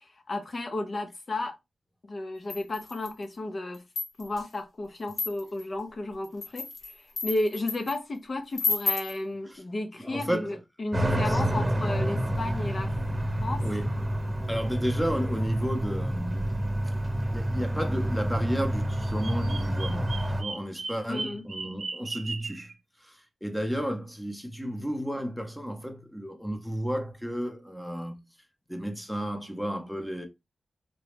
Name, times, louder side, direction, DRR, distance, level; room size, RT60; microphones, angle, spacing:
voice 1, 0.0-1.6 2.1-3.8 4.2-12.9 13.4-13.6 21.1-21.4, left 2 dB, 40° left, 0.5 m, -33 dB
sound 1, 2.5-3.2 3.7-4.4 5.1-5.6 6.2-8.0 8.5-9.2, left 3 dB, 80° left, 1.1 m, -31 dB
voice 2, 10.0-10.6 11.2-11.4 13.6-13.9 14.5-16.8 17.3-22.7 23.0-28.2 28.7-30.3, equal, ahead, 0.6 m, -32 dB
sound 2, 10.9-20.4, right 1 dB, 15° right, 1.1 m, -28 dB
Bird vocalization bird call bird song, 18.9-22.7, right 3 dB, 55° right, 0.6 m, -38 dB
3.9 x 2.2 x 3.2 m
wide cardioid pair, 130°, 0 cm